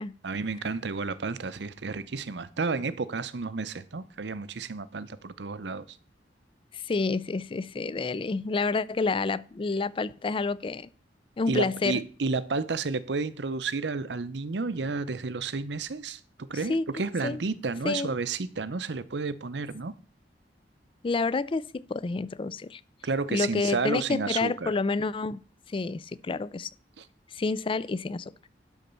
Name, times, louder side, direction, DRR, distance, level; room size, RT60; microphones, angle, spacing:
voice 1, 0.2-6.0 11.5-16.2 16.5-19.9 23.0-24.7 27.0-27.1, right 4 dB, 70° right, 0.7 m, -31 dB
voice 2, 6.7-10.9 11.4-12.0 16.7-17.4 17.8-18.1 21.0-22.8 23.3-25.4 25.7-26.7 27.3-28.3, left 3 dB, 30° left, 0.4 m, -29 dB
12.0 x 4.2 x 6.8 m
head